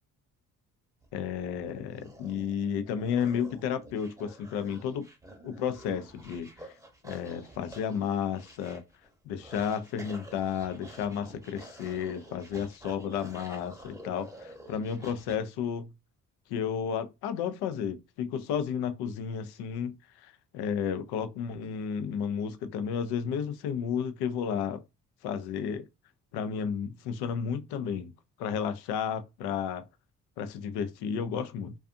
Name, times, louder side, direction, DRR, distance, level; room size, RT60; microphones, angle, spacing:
sound 1, 1.0-15.4, right 1 dB, 10° right, 0.8 m, -50 dB
voice 1, 1.1-5.1 5.4-6.7 7.0-8.8 9.3-15.9 16.5-24.8 25.2-25.9 26.3-28.1 28.4-29.9 30.4-31.7, left 7 dB, 85° left, 0.5 m, -32 dB
2.5 x 2.3 x 2.5 m
supercardioid pair, 70°, 38 cm